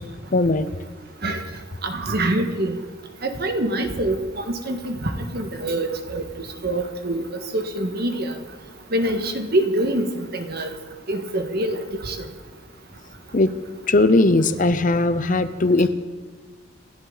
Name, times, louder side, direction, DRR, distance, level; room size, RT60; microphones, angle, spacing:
voice 1, 0.3-0.7 13.3-13.6 13.9-15.9, left 2 dB, 40° left, 12 dB, 0.7 m, -18 dB
voice 2, 1.8-2.8 3.2-6.2 6.6-7.3 7.5-8.3 8.9-10.7 11.1-11.8 12.0-12.1, right 1 dB, 50° right, 5 dB, 1.7 m, -25 dB
27.5 x 12.5 x 4.0 m, 1.4 s
head